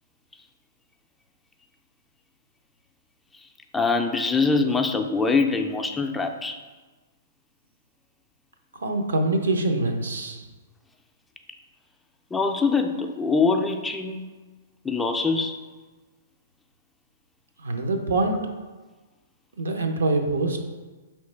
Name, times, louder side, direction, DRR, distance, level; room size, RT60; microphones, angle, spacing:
voice 1, 3.7-6.6 12.3-14.2 14.8-15.6, left 4 dB, 10° left, 5 dB, 0.3 m, -23 dB
voice 2, 8.7-10.5 17.6-18.4 19.6-20.6, right 2 dB, 80° right, 4 dB, 0.6 m, -24 dB
4.9 x 3.1 x 3.2 m, 1.3 s
hypercardioid pair, 125°, 0 cm